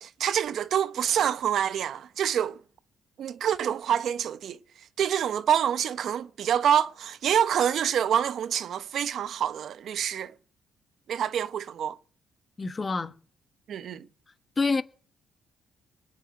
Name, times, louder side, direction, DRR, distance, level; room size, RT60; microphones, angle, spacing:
voice 1, 0.0-2.6 3.2-4.6 5.0-10.3 11.1-12.0 13.7-14.1, right 9 dB, 65° right, 0.8 m, -26 dB
voice 2, 12.6-13.1 14.6-14.8, left 4 dB, 30° left, 1.3 m, -26 dB
21.0 x 7.2 x 9.2 m
cardioid pair, 90°, 0 cm